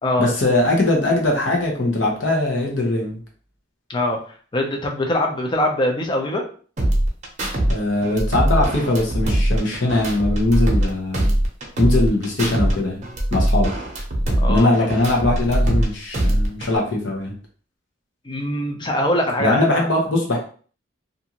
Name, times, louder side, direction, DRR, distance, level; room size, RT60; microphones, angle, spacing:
voice 1, 0.2-3.2 7.7-11.3 11.8-13.0 13.3-13.7 14.5-17.3 19.4-20.4, left 2 dB, 70° left, 0 dB, 0.9 m, -20 dB
voice 2, 3.9-4.2 4.5-6.5 14.3-14.7 18.2-19.9, left 1 dB, 25° left, 2 dB, 0.5 m, -22 dB
sound 1, 6.8-7.7 8.0-10.9 11.1-12.7 13.0-15.8 16.1-16.8, right 1 dB, 40° right, 0.7 m, -21 dB
2.6 x 2.5 x 2.9 m, 0.43 s
head